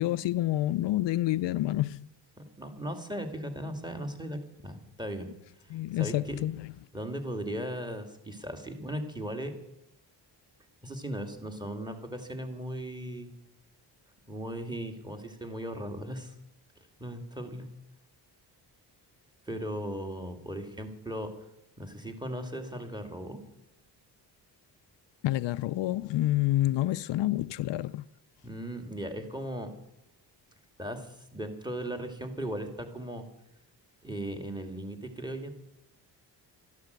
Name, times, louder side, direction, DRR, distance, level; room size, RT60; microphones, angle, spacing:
voice 1, 0.0-2.1 5.7-6.7 25.2-28.0, left 15 dB, 75° left, 0.5 m, -28 dB
voice 2, 2.6-5.3 5.9-6.4 6.9-9.5 10.8-13.3 14.3-16.3 17.0-17.7 19.5-21.3 21.8-23.4 28.4-29.7 30.8-33.3 34.0-35.5, right 1 dB, 10° right, 2.5 m, -37 dB
12.5 x 11.5 x 8.0 m
cardioid pair, 90°, 43 cm